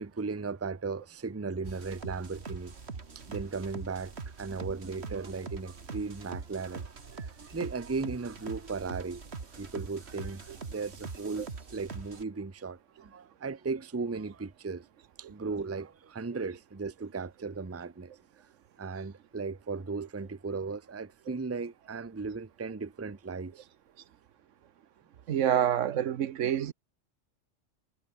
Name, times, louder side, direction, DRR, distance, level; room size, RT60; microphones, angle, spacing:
voice 1, 0.0-2.7 3.1-9.2 9.6-14.8 15.2-18.1 18.8-23.7 26.4-26.5, right 4 dB, 15° right, 0.6 m, -36 dB
sound 1, 1.6-12.2, right 4 dB, 60° right, 2.2 m, -43 dB
voice 2, 25.3-26.7, right 10 dB, 80° right, 1.2 m, -27 dB
omnidirectional pair, 1.3 m